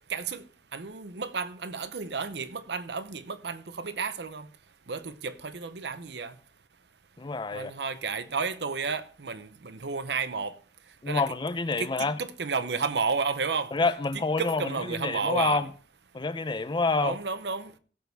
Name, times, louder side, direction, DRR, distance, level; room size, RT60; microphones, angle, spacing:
voice 1, 0.1-0.4 0.7-4.5 4.9-6.3 7.5-10.5 11.1-11.2 11.8-13.7 14.4-15.6 17.0-17.7, right 5 dB, 70° right, 0.8 m, -32 dB
voice 2, 7.2-7.7 11.0-12.2 13.7-15.7 16.1-17.2, left 3 dB, 25° left, 0.5 m, -28 dB
16.5 x 6.9 x 3.4 m
head